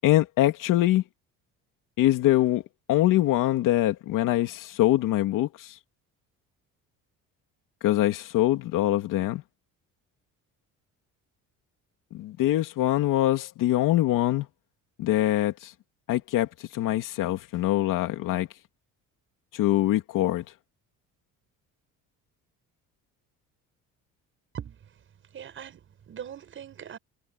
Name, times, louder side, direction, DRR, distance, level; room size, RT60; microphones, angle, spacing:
voice 1, 0.0-1.0 2.0-2.6 2.9-5.8 7.8-9.4 12.1-14.5 15.0-15.7 16.1-18.5 19.5-20.4, left 14 dB, 75° left, 2.8 m, -24 dB
voice 2, 25.3-27.0, right 9 dB, 40° right, 6.5 m, -41 dB
cardioid pair, 170°, 32 cm